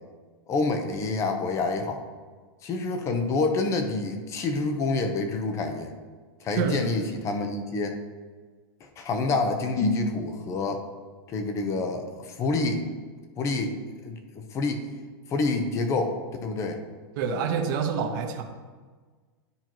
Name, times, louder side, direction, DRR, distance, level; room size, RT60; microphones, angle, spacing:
voice 1, 0.5-2.0 2.6-5.9 6.4-8.0 8.8-10.8 11.3-12.8 13.4-13.8 14.0-14.8 15.3-16.2 16.4-16.8, left 3 dB, 20° left, 5 dB, 0.8 m, -27 dB
voice 2, 6.6-6.9 17.2-18.4, right 6 dB, 50° right, 3 dB, 1.1 m, -27 dB
12.5 x 4.5 x 3.0 m, 1.5 s
supercardioid pair, 150°, 13 cm